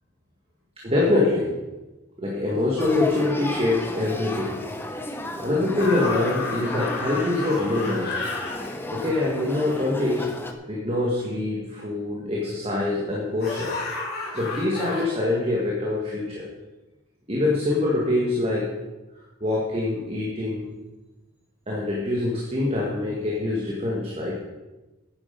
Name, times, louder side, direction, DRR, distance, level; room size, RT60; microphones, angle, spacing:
voice 1, 0.8-1.6 2.2-4.6 5.4-8.1 8.9-10.3 10.7-13.8 14.3-16.5 17.3-18.8 19.1-20.7 21.7-24.4, left 2 dB, 30° right, -4 dB, 1.8 m, -24 dB
Male speech man speaking / Child speech kid speaking / Conversation, 2.8-10.5, left 1 dB, 10° left, 0.8 m, -34 dB
sound 1, 5.8-10.1 13.4-15.0, left 3 dB, 50° left, 3.3 m, -32 dB
9.8 x 9.8 x 5.3 m, 1.1 s
head